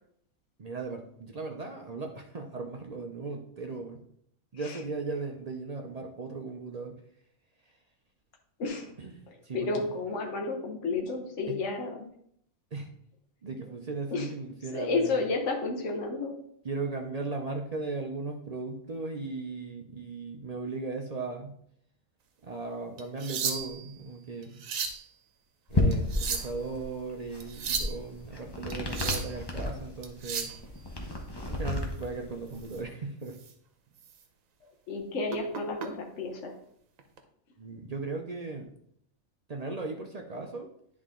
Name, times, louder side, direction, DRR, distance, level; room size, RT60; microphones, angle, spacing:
voice 1, 0.6-4.0 4.5-7.0 7.7-7.8 9.0-9.9 11.5-11.6 12.7-12.9 13.4-15.2 16.6-21.6 22.4-24.6 25.7-30.5 31.5-33.4 37.6-38.7 39.5-40.7, right 3 dB, 45° right, 3 dB, 0.5 m, -37 dB
voice 2, 8.6-8.9 9.3-12.1 14.1-14.3 14.7-16.3 34.9-36.5, left 3 dB, 60° left, 2 dB, 1.3 m, -31 dB
sound 1, 23.0-23.9 24.4-25.0 25.9-26.6 27.4-27.9 28.7-29.3 30.0-30.6 32.6-32.8 33.3-33.5 34.0-34.1 35.3-35.9 37.0-37.2, right 6 dB, 70° right, 1.2 m, -34 dB
sound 2, 25.7-32.8, left 2 dB, 20° left, 0.8 m, -32 dB
10.0 x 3.7 x 3.7 m, 0.69 s
omnidirectional pair, 1.5 m